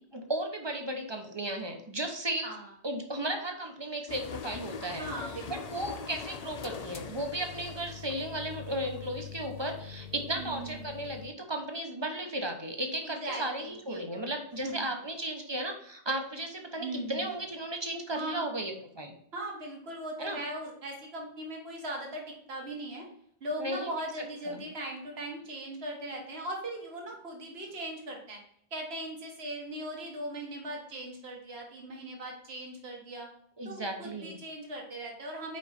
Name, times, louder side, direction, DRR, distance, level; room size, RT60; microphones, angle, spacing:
voice 1, 0.1-2.5 2.8-5.1 5.5-19.1 20.2-20.4 23.6-23.9 24.5-24.6 33.6-34.4, right 1 dB, 30° right, 4 dB, 0.7 m, -35 dB
sound 1, 4.1-11.3, left 6 dB, 50° left, 0.5 m, -42 dB
voice 2, 5.0-5.7 10.4-10.9 13.0-14.3 14.6-14.7 16.8-17.3 18.1-18.5 19.3-23.1 23.4-28.4 28.7-33.3 33.6-35.6, right 1 dB, 75° right, 0 dB, 1.6 m, -39 dB
5.2 x 4.7 x 4.0 m, 0.66 s
omnidirectional pair, 1.1 m